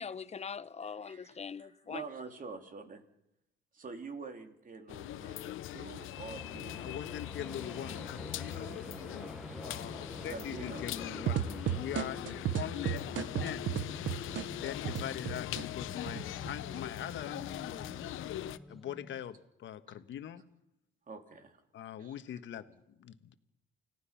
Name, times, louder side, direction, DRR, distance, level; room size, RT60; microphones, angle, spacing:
voice 1, 0.0-2.1, left 6 dB, 35° left, 0.8 m, -42 dB
voice 2, 1.0-3.0 3.7-7.1 9.5-9.6 10.3-10.9 12.5-12.6 19.9-20.0 21.1-21.6 22.0-22.4, right 4 dB, 45° right, 3.1 m, -47 dB
sound 1, 4.9-18.6, left 14 dB, 85° left, 0.8 m, -41 dB
sound 2, 6.1-19.4, equal, ahead, 0.8 m, -48 dB
voice 3, 6.8-8.9 9.6-12.2 12.5-13.9 14.5-18.0 18.7-20.4 21.7-23.3, left 10 dB, 70° left, 1.4 m, -42 dB
sound 3, 11.3-15.6 16.1-16.8, right 10 dB, 70° right, 1.1 m, -34 dB
29.5 x 17.5 x 5.8 m
cardioid pair, 90°, 20 cm